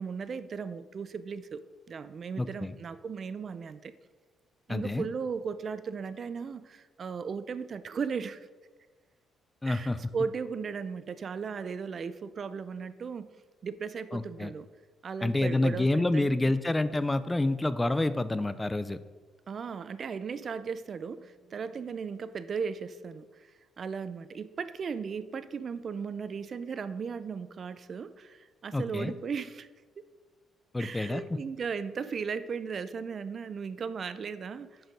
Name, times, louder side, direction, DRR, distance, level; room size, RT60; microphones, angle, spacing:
voice 1, 0.0-3.9 4.7-8.4 9.6-13.3 13.6-14.7 15.0-16.6 19.5-23.5 23.8-29.7 30.0-30.1 30.8-34.8, right 5 dB, 50° right, 14 dB, 0.4 m, -36 dB
voice 2, 2.4-2.7 4.7-5.1 9.6-10.0 14.1-14.5 15.2-19.0 28.7-29.1 30.7-31.2, left 2 dB, 15° left, 14 dB, 0.4 m, -28 dB
6.6 x 6.3 x 5.2 m, 1.3 s
cardioid pair, 90°, 0 cm